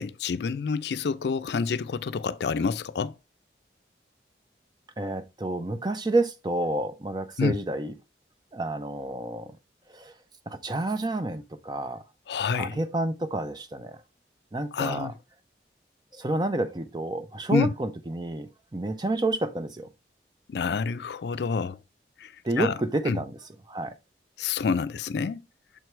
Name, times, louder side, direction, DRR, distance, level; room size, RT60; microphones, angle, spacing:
voice 1, 0.0-3.1 7.4-7.6 12.3-12.8 14.7-15.1 17.5-17.7 20.5-21.8 22.2-22.3 22.6-22.7 23.1-23.2 24.4-25.4, left 5 dB, 70° left, 0.4 m, -28 dB
voice 2, 5.0-7.9 8.5-9.6 9.9-10.1 10.5-12.0 12.5-14.0 14.5-15.1 16.1-19.9 22.4-23.4 23.7-23.9, right 2 dB, 25° right, 0.5 m, -29 dB
6.7 x 4.6 x 3.2 m
head